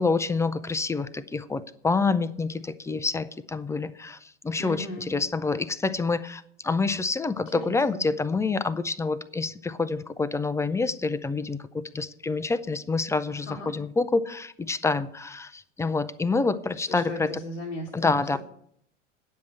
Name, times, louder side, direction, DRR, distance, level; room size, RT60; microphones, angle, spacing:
voice 1, 0.0-4.2 4.4-17.3 17.9-18.4, left 4 dB, 10° left, 14 dB, 0.5 m, -27 dB
voice 2, 4.6-5.1 7.6-8.0 13.5-13.7 16.9-18.4, left 1 dB, 90° left, 0 dB, 1.6 m, -37 dB
9.4 x 7.5 x 8.6 m, 0.67 s
figure-of-eight pair, 85°, 38 cm